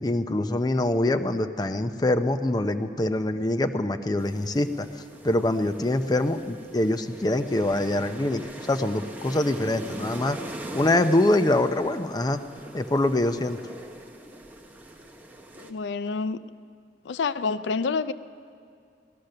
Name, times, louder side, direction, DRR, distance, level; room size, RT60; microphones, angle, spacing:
voice 1, 0.0-4.9 5.2-10.4 10.7-12.4 12.7-13.6, left 1 dB, 20° left, 9 dB, 0.5 m, -24 dB
sound 1, 4.2-15.7, right 1 dB, 10° right, 0.9 m, -41 dB
voice 2, 15.6-16.4 17.1-18.1, left 4 dB, 85° left, 14 dB, 0.4 m, -28 dB
17.0 x 11.5 x 6.6 m, 2.3 s
head